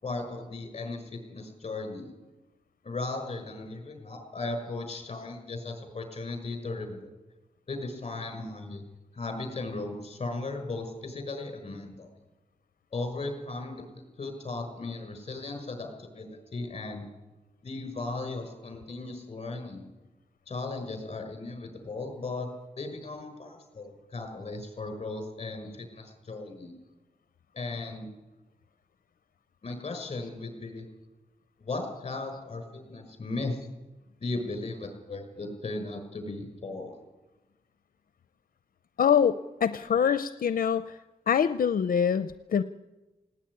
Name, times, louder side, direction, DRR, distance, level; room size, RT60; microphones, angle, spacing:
voice 1, 0.0-2.1 2.8-7.1 7.7-8.8 9.1-12.1 12.9-13.8 14.2-17.1 17.6-19.9 20.5-22.5 22.7-26.7 27.5-28.1 29.6-30.9 31.6-33.6 34.2-37.0, left 3 dB, 40° left, 6 dB, 6.0 m, -36 dB
voice 2, 39.0-41.0 41.3-42.6, left 7 dB, 85° left, 12 dB, 0.6 m, -25 dB
19.0 x 17.5 x 9.9 m, 1.1 s
wide cardioid pair, 115°, 15 cm